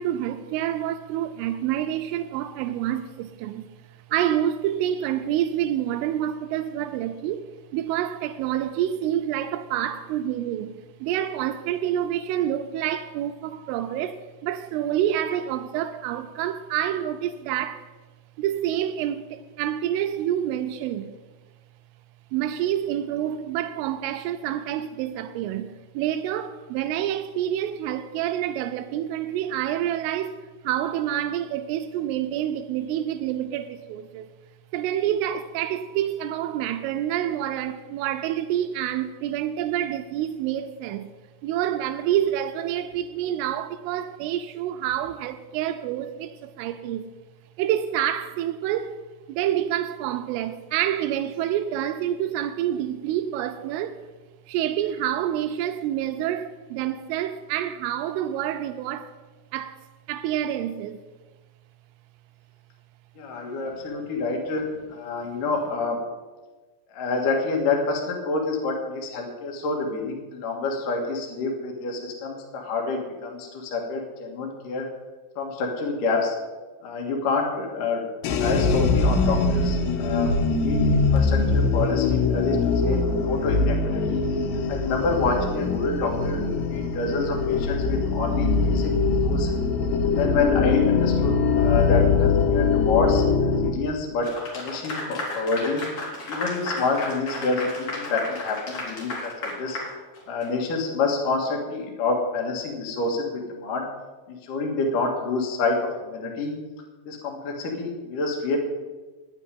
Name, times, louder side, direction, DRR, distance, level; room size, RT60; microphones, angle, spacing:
voice 1, 0.0-3.7 4.1-7.5 7.7-10.8 11.0-17.9 18.4-21.1 22.3-34.3 34.7-41.1 41.4-47.1 47.6-49.0 49.3-54.0 54.5-59.2 59.5-59.8 60.1-61.0, right 11 dB, 85° right, 3.1 m, -27 dB
voice 2, 63.2-66.0 66.9-74.9 75.4-76.4 76.8-84.2 84.7-86.4 86.7-88.9 89.2-89.5 90.1-95.8 96.3-99.8 100.3-103.9 104.3-106.5 107.1-108.6, left 3 dB, 55° left, 2.6 m, -27 dB
sound 1, 78.2-93.7, left 4 dB, 75° left, 2.1 m, -22 dB
Clapping / Applause, 94.2-100.6, left 2 dB, 35° left, 3.2 m, -33 dB
9.9 x 9.4 x 9.8 m
omnidirectional pair, 5.6 m